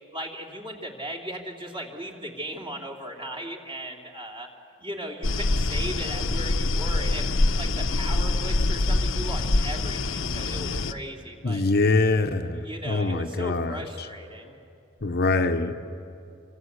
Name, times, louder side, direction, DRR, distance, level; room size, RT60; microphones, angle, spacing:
voice 1, 0.1-4.5 4.8-7.2 7.6-11.6 12.6-14.6, equal, 25° right, 1 dB, 3.1 m, -37 dB
sound 1, 5.2-10.9, left 2 dB, 75° left, 1.0 m, -25 dB
voice 2, 11.4-13.8 15.0-15.7, left 3 dB, 50° left, 7 dB, 1.0 m, -24 dB
27.0 x 26.0 x 8.2 m, 2.6 s
head